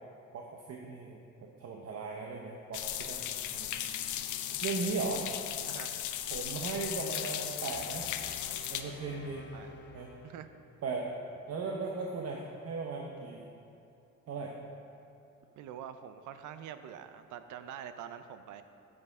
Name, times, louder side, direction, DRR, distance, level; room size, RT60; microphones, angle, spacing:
voice 1, 0.3-3.2 3.5-3.8 4.2-4.3 4.6-5.2 6.3-8.1 8.7-9.4 9.9-10.1 10.8-11.1 11.5-13.5 14.3-14.5, right 4 dB, 55° right, 0 dB, 0.9 m, -37 dB
sound 1, 2.7-8.8, left 11 dB, 75° left, 0.6 m, -36 dB
sound 2, 7.7-10.9, left 2 dB, 35° left, 1.0 m, -52 dB
voice 2, 15.6-18.6, right 9 dB, 80° right, 10 dB, 0.6 m, -45 dB
9.1 x 8.0 x 3.6 m, 2.7 s
cardioid pair, 90°, 30 cm